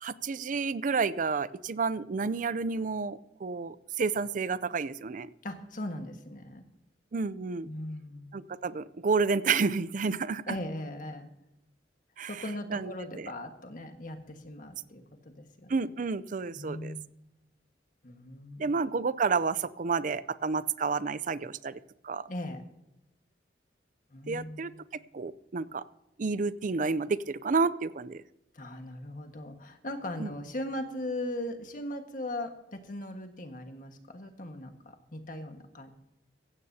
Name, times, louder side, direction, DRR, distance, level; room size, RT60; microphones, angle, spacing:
voice 1, 0.0-5.3 7.1-7.7 8.3-10.6 12.2-12.3 12.7-13.3 15.7-16.9 18.6-21.8 22.0-22.3 24.3-24.7 25.1-25.8 26.2-28.2 30.2-30.3, right 4 dB, 45° right, 17 dB, 0.5 m, -30 dB
voice 2, 5.4-6.6 7.6-8.3 10.5-11.3 12.3-15.7 16.6-17.2 18.0-18.7 22.3-22.6 24.1-24.8 28.5-35.9, left 1 dB, 50° left, 5 dB, 1.6 m, -39 dB
15.5 x 15.5 x 2.8 m, 0.92 s
head